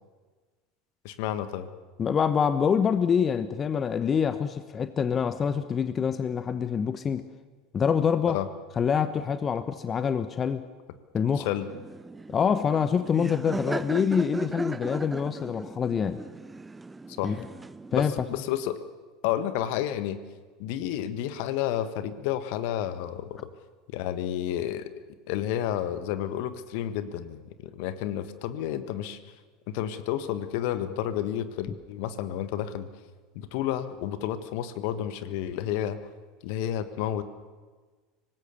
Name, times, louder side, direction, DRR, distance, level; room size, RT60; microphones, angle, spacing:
voice 1, 1.0-1.7 8.3-8.5 11.4-11.7 17.2-17.4 17.9-18.8 19.2-20.2 20.6-23.5 23.9-24.9 25.3-29.2 29.7-32.9 33.3-36.0 36.4-37.2, left 11 dB, 60° left, 12 dB, 1.4 m, -31 dB
voice 2, 2.0-7.3 7.7-8.4 8.8-10.6 11.1-11.5 12.3-16.2 17.2-17.4 17.9-18.1, left 7 dB, 30° left, 12 dB, 1.0 m, -25 dB
Laughter, 11.7-18.0, right 3 dB, 15° right, 0.6 m, -37 dB
24.5 x 20.0 x 6.8 m, 1.4 s
figure-of-eight pair, 75°, 0 cm